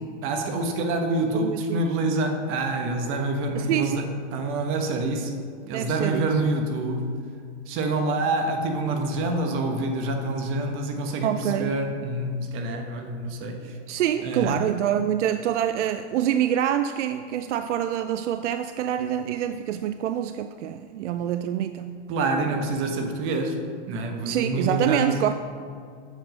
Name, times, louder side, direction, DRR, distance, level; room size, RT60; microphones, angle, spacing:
voice 1, 0.2-5.3 5.6-7.1 7.7-13.7 14.2-14.6 22.1-23.6 23.9-25.2, right 2 dB, 35° right, 4 dB, 1.3 m, -27 dB
voice 2, 1.3-1.9 3.5-4.1 5.7-6.4 11.2-11.7 13.9-22.0 24.3-25.3, right 10 dB, 80° right, 10 dB, 0.5 m, -26 dB
8.1 x 7.1 x 5.3 m, 2.2 s
hypercardioid pair, 130°, 35 cm